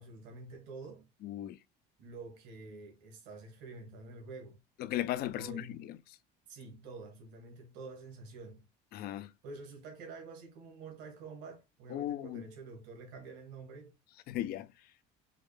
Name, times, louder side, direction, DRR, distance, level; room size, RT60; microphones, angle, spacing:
voice 1, 0.0-1.1 2.0-4.6 5.3-5.9 6.5-8.6 9.4-13.9, right 3 dB, 75° right, 1.5 m, -48 dB
voice 2, 1.2-1.6 4.8-5.6 8.9-9.3 11.9-12.4 14.3-14.7, left 13 dB, 55° left, 0.4 m, -36 dB
4.8 x 2.1 x 3.2 m
cardioid pair, 115°, 19 cm